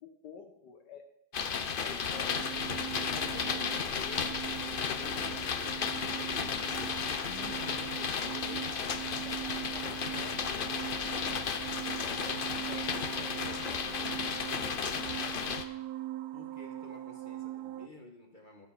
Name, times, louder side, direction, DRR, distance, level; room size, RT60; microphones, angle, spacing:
voice 1, 0.0-1.1 1.8-5.6 7.2-9.0 9.2-14.1 14.5-15.5, left 5 dB, 70° left, 5 dB, 1.6 m, -51 dB
sound 1, 1.3-15.6, left 6 dB, 55° left, 0.6 m, -34 dB
sound 2, 2.1-17.9, right 14 dB, 70° right, 0.9 m, -42 dB
voice 2, 4.8-6.8 16.3-18.7, left 2 dB, 30° left, 2 dB, 1.4 m, -53 dB
20.0 x 7.0 x 4.2 m, 0.77 s
omnidirectional pair, 1.9 m